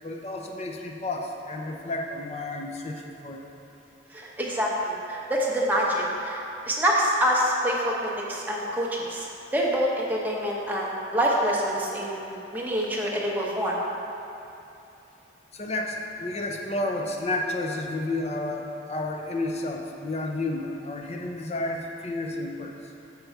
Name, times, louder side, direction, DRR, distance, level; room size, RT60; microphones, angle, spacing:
voice 1, 0.0-3.4 15.5-22.7, left 2 dB, 35° left, 2 dB, 0.5 m, -31 dB
voice 2, 4.1-13.8, equal, 10° right, -4 dB, 0.9 m, -26 dB
6.8 x 5.2 x 4.5 m, 2.9 s
head